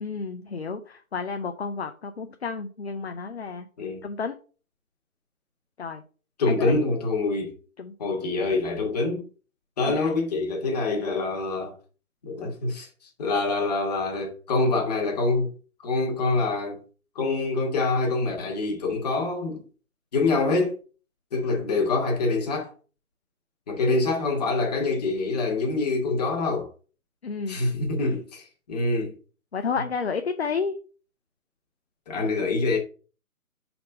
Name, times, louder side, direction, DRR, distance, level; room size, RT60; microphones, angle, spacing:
voice 1, 0.0-3.7 4.0-4.4 5.8-6.0 6.5-6.7 7.8-7.9 9.8-10.1 27.2-27.6 29.5-30.7, left 5 dB, 50° left, 0.6 m, -31 dB
voice 2, 6.4-7.5 8.0-9.3 9.8-11.7 12.2-12.9 13.2-15.5 15.8-16.8 17.1-19.6 20.1-20.8 21.3-22.7 23.7-26.7 27.5-29.1 32.1-32.8, left 3 dB, 30° left, 1.5 m, -25 dB
5.2 x 4.3 x 5.2 m
figure-of-eight pair, 145°, 43 cm